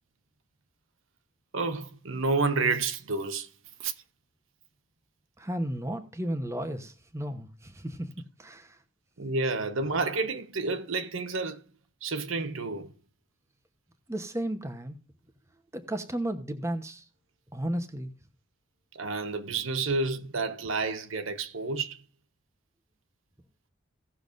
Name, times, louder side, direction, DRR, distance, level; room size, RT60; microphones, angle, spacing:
voice 1, 1.5-3.5 3.8-3.9 9.2-11.7 12.0-12.9 18.9-22.0, right 3 dB, 75° right, 1.1 m, -30 dB
voice 2, 5.4-8.1 8.4-8.8 14.1-15.0 15.7-17.1 17.5-18.1, right 1 dB, 15° right, 1.0 m, -33 dB
17.5 x 6.9 x 2.6 m
head